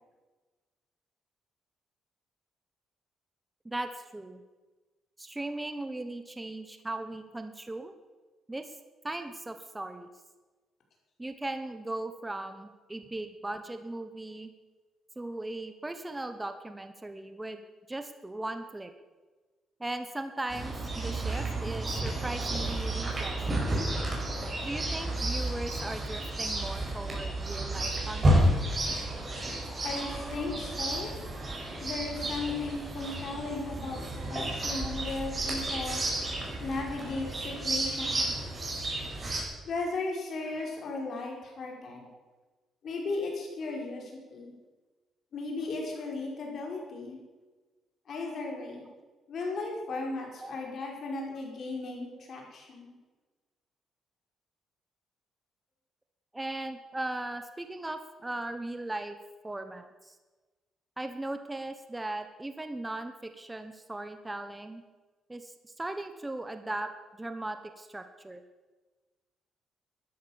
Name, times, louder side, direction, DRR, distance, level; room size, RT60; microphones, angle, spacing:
voice 1, 3.6-4.4 5.2-7.9 8.5-8.7 9.0-10.1 11.2-14.5 15.2-17.6 17.9-18.9 19.8-23.8 24.6-28.5 33.8-33.9 34.3-34.5 34.8-34.9 48.9-49.0 50.4-50.5 52.1-52.2 56.3-59.2 59.4-60.2 61.0-64.8 65.3-66.9 67.2-68.4, right 2 dB, 15° right, 8 dB, 1.2 m, -38 dB
Chirp tweet, 20.5-39.4, right 1 dB, 30° right, 5.8 m, -31 dB
voice 2, 29.8-31.1 31.8-36.0 36.6-38.5 39.6-42.1 42.8-44.5 45.3-47.2 48.1-48.9 49.3-52.9, left 3 dB, 60° left, 0 dB, 5.1 m, -36 dB
13.5 x 11.0 x 7.3 m, 1.3 s
cardioid pair, 90°, 0 cm